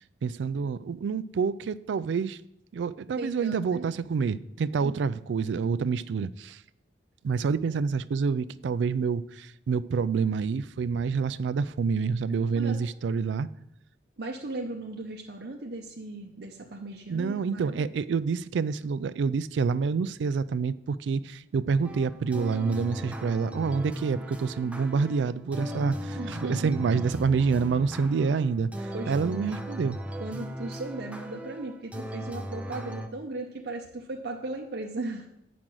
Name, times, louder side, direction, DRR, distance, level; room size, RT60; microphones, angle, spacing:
voice 1, 0.2-2.4 2.7-6.6 7.2-13.5 17.1-30.0, right 5 dB, 85° right, 0.3 m, -27 dB
voice 2, 3.1-3.9 4.8-5.0 12.5-12.8 14.2-17.8 26.2-26.7 28.9-29.4 30.2-35.3, right 2 dB, 60° right, 0.7 m, -37 dB
sound 1, 21.8-33.1, equal, 10° right, 0.6 m, -37 dB
7.4 x 5.1 x 6.2 m
head